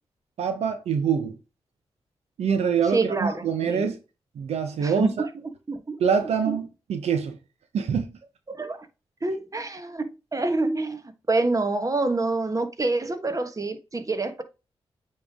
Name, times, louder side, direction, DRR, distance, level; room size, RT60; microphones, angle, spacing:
voice 1, 0.4-1.3 2.4-4.0 4.4-5.3 6.0-7.4 7.7-8.1, right 7 dB, 85° right, 0.9 m, -25 dB
voice 2, 2.9-3.9 4.8-5.1 5.7-6.0 6.5-6.6 8.5-8.9 9.2-14.4, right 2 dB, 30° right, 1.4 m, -27 dB
8.5 x 3.4 x 3.6 m
cardioid pair, 45°, 11 cm